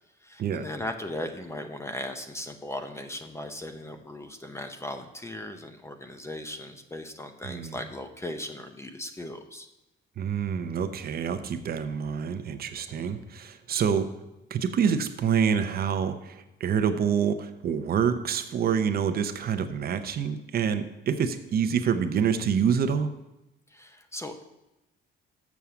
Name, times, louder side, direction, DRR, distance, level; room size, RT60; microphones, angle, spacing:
voice 1, 0.2-9.7 12.9-13.3 23.7-24.4, left 1 dB, 15° left, 7 dB, 0.6 m, -38 dB
voice 2, 7.4-7.8 10.2-14.1 14.5-23.1, right 7 dB, 50° right, 9 dB, 0.7 m, -27 dB
7.2 x 6.3 x 6.9 m, 0.95 s
cardioid pair, 140°, 21 cm